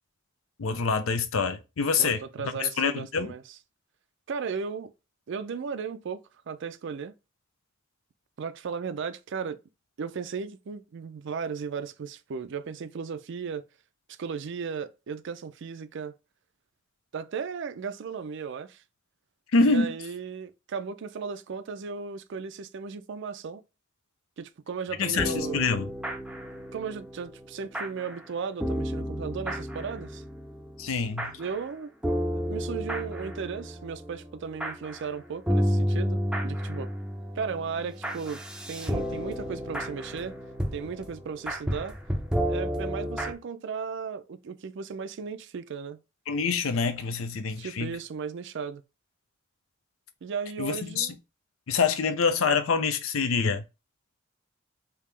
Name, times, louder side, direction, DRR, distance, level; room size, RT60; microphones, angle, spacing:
voice 1, 0.6-3.3 19.5-19.9 25.0-25.9 30.8-31.3 46.3-48.0 50.6-51.2 51.7-53.6, left 4 dB, 85° left, 0.5 m, -26 dB
voice 2, 2.0-3.4 4.3-4.9 5.3-7.1 8.4-9.6 10.0-13.6 14.2-16.2 17.1-18.8 19.6-23.6 24.4-25.7 26.7-30.2 31.4-31.9 32.3-36.9 37.3-38.4 38.7-40.3 40.7-42.0 42.5-46.0 47.6-48.8 50.2-51.1, right 5 dB, 60° right, 0.4 m, -36 dB
sound 1, 24.9-28.3 28.6-31.7 32.0-43.3, equal, 5° right, 0.5 m, -32 dB
3.5 x 2.8 x 3.2 m
head